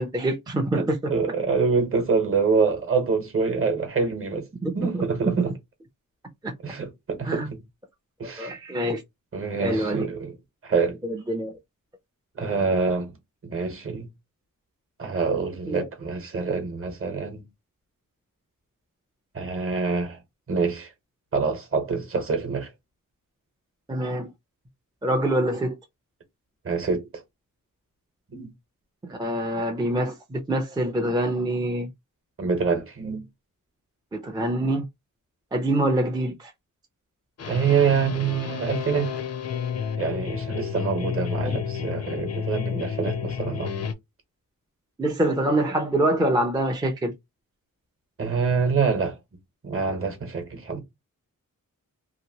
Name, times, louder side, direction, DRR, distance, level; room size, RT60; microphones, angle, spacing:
voice 1, 0.0-1.0 4.6-5.0 5.4-5.5 6.4-6.5 7.2-7.5 8.4-9.0 9.6-10.1 11.0-11.6 15.7-15.8 23.9-24.3 25.0-25.8 29.1-31.9 34.1-34.8 35.5-36.5 41.4-41.6 45.0-47.1, right 1 dB, 15° right, 0.4 m, -25 dB
voice 2, 0.7-4.5 4.7-5.5 6.6-7.6 8.2-8.5 9.3-10.3 10.6-11.0 12.4-13.2 13.4-14.1 15.0-17.4 19.3-20.2 20.5-20.9 21.3-22.7 26.6-27.1 28.3-28.5 32.4-33.2 37.4-39.1 39.9-43.7 48.2-49.2 49.6-50.8, right 5 dB, 40° right, 1.0 m, -26 dB
sound 1, 37.4-43.9, left 7 dB, 50° left, 0.5 m, -31 dB
2.9 x 2.5 x 2.7 m
wide cardioid pair, 175°, 33 cm